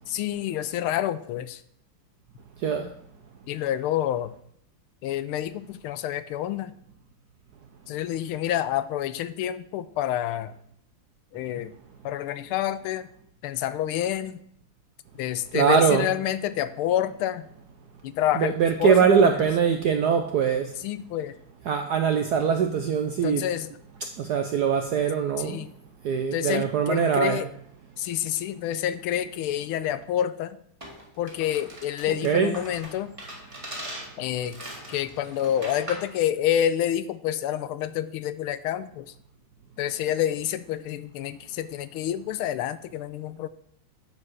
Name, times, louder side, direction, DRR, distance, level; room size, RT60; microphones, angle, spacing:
voice 1, 0.1-1.6 3.5-4.3 5.0-6.7 7.9-10.5 11.3-11.7 12.0-13.1 13.4-14.4 15.2-17.4 18.0-19.5 20.8-21.3 23.2-23.7 25.4-25.7 26.3-27.5 28.0-30.6 31.2-33.1 34.2-34.6 34.9-39.1 39.8-43.5, left 11 dB, 80° left, 1.4 m, -28 dB
voice 2, 2.6-2.9 15.5-16.1 18.3-20.7 21.7-23.4 24.2-25.7 26.0-27.4 32.2-32.6, right 7 dB, 75° right, 0.9 m, -22 dB
sound 1, 30.8-36.1, right 1 dB, 15° right, 1.8 m, -40 dB
9.6 x 4.7 x 6.2 m
omnidirectional pair, 2.4 m